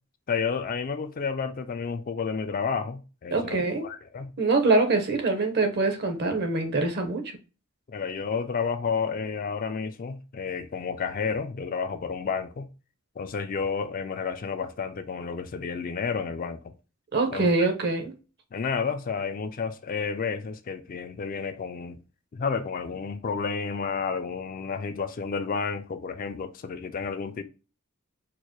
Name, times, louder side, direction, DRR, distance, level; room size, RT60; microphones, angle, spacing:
voice 1, 0.3-4.3 7.9-12.7 13.2-16.6 17.3-17.5 18.5-22.0 22.3-27.4, left 5 dB, 40° left, 0.3 m, -31 dB
voice 2, 3.3-3.8 4.4-7.2 17.1-18.1, right 3 dB, 50° right, 0.8 m, -24 dB
4.5 x 2.1 x 2.9 m
head